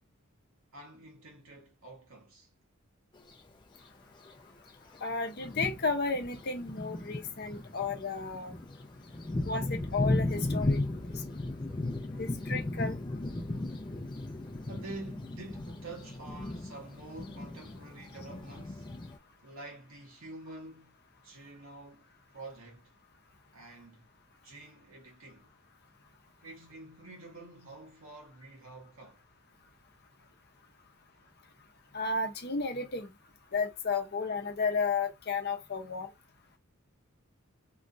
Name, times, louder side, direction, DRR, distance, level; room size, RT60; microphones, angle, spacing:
voice 1, 0.7-2.5 14.7-18.9 19.4-22.9 23.5-24.1 24.4-25.5 26.4-29.2, right 2 dB, 70° right, 1.3 m, -48 dB
Thunder, 3.2-3.3 4.3-4.4 4.9-5.0 5.4-19.2, left 2 dB, 20° left, 0.4 m, -36 dB
voice 2, 5.0-8.5 9.4-10.8 12.2-13.0 31.9-33.1 33.5-36.1, left 4 dB, 45° left, 0.7 m, -33 dB
3.1 x 2.5 x 2.6 m
head